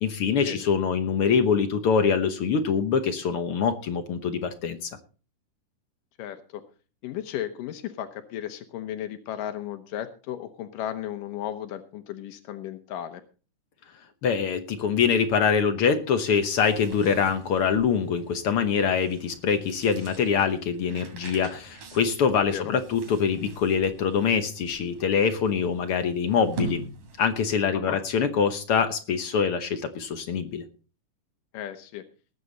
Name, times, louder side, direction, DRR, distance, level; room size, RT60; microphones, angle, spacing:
voice 1, 0.0-4.9 14.2-26.8 27.2-30.6, left 6 dB, 65° left, 8 dB, 1.5 m, -24 dB
voice 2, 6.2-6.6 7.0-13.2 22.5-22.7 27.7-28.0 31.5-32.1, left 11 dB, 85° left, 8 dB, 2.6 m, -35 dB
sound 1, 16.4-27.5, right 2 dB, 75° right, 4.3 m, -42 dB
19.5 x 9.1 x 4.0 m, 0.37 s
omnidirectional pair, 3.7 m